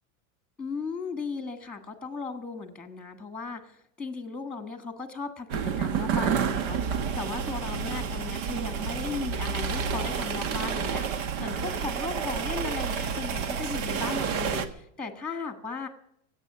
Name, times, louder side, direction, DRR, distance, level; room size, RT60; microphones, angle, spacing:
voice 1, 0.6-15.9, left 4 dB, ahead, 8 dB, 1.5 m, -36 dB
sound 1, 5.5-14.7, right 6 dB, 75° right, 1.7 m, -29 dB
16.5 x 8.6 x 8.4 m, 0.73 s
supercardioid pair, 160°, 40 cm